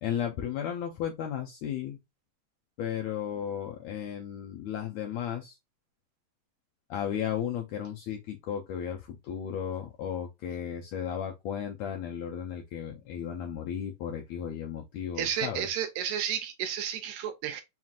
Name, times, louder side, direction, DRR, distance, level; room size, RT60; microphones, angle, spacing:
voice 1, 0.0-2.0 2.8-5.5 6.9-15.7, left 9 dB, 80° left, 1.6 m, -34 dB
voice 2, 15.2-17.6, right 9 dB, 80° right, 1.9 m, -32 dB
5.6 x 2.5 x 2.4 m
omnidirectional pair, 3.8 m